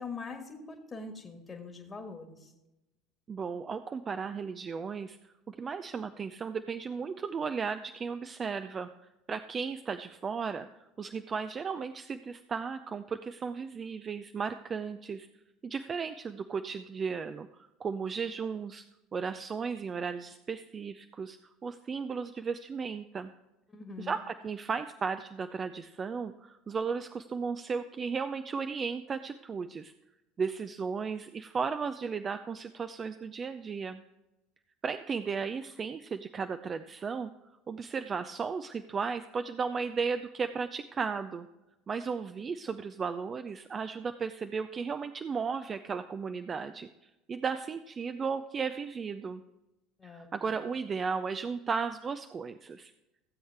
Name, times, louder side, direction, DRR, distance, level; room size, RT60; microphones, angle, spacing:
voice 1, 0.0-2.5 23.7-24.2 50.0-50.6, left 4 dB, 25° left, 4 dB, 1.6 m, -43 dB
voice 2, 3.3-8.9 9.3-10.7 11.0-15.3 15.6-17.5 17.8-18.8 19.1-23.3 24.0-29.9 30.4-34.0 34.8-37.3 37.7-41.5 41.9-46.9 47.3-49.4 50.0-52.9, right 5 dB, 30° right, 10 dB, 0.5 m, -35 dB
16.0 x 7.9 x 3.4 m, 0.96 s
figure-of-eight pair, 70°, 0 cm